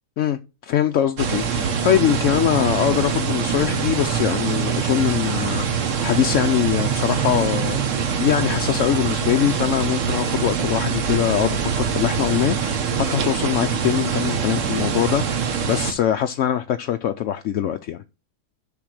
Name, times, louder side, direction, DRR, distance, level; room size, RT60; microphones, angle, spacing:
voice 1, 0.2-7.8 8.2-12.8 13.1-18.0, left 10 dB, 65° left, 0.8 m, -22 dB
sound 1, 1.2-15.9, right 7 dB, 55° right, 1.2 m, -24 dB
7.1 x 5.9 x 6.3 m
omnidirectional pair, 1.8 m